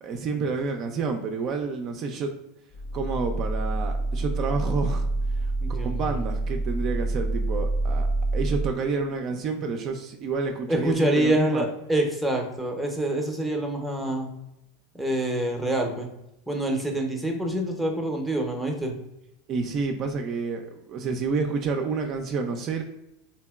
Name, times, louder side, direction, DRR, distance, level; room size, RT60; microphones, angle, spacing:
voice 1, 0.0-2.4 2.9-5.1 5.4-8.1 8.3-11.7 19.5-22.8, right 4 dB, 45° right, 4 dB, 0.3 m, -29 dB
sound 1, 2.7-8.7, right 2 dB, 60° left, 0.9 m, -27 dB
voice 2, 5.6-6.2 10.7-14.3 15.0-16.1 16.5-18.9, right 1 dB, ahead, 2 dB, 0.6 m, -26 dB
2.8 x 2.7 x 2.2 m, 0.88 s
hypercardioid pair, 105°, 0 cm